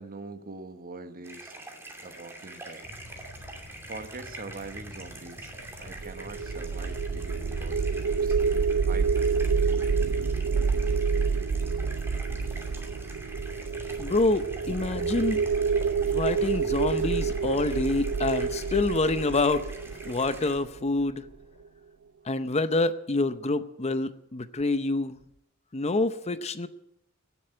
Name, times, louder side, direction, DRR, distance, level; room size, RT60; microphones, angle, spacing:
voice 1, 0.0-1.5 2.0-2.9 3.9-5.5 5.8-9.3, right 3 dB, 40° right, 10 dB, 1.1 m, -43 dB
sound 1, 1.2-20.6, right 1 dB, 10° right, 2.7 m, -45 dB
sound 2, 2.8-21.6, left 2 dB, 55° left, 3.6 m, -47 dB
sound 3, 5.9-21.0, right 5 dB, 90° right, 0.5 m, -28 dB
voice 2, 14.0-15.4 16.1-19.7 20.0-21.2 22.3-25.2 25.7-26.7, left 2 dB, 30° left, 13 dB, 0.7 m, -27 dB
17.5 x 7.8 x 9.9 m, 0.84 s
head